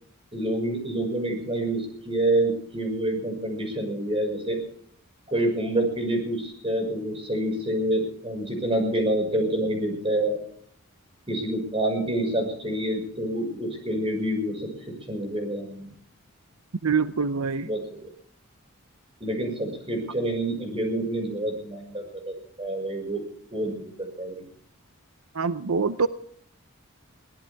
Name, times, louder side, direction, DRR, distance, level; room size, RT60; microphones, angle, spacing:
voice 1, 0.3-4.6 5.3-10.4 11.3-14.7 15.1-15.9 17.6-18.0 19.2-23.2 23.5-23.7 24.0-24.4, right 1 dB, 25° right, 4 dB, 5.9 m, -27 dB
voice 2, 16.8-17.7 25.3-26.1, right 5 dB, 80° right, 13 dB, 0.7 m, -24 dB
23.0 x 17.0 x 3.6 m, 0.62 s
head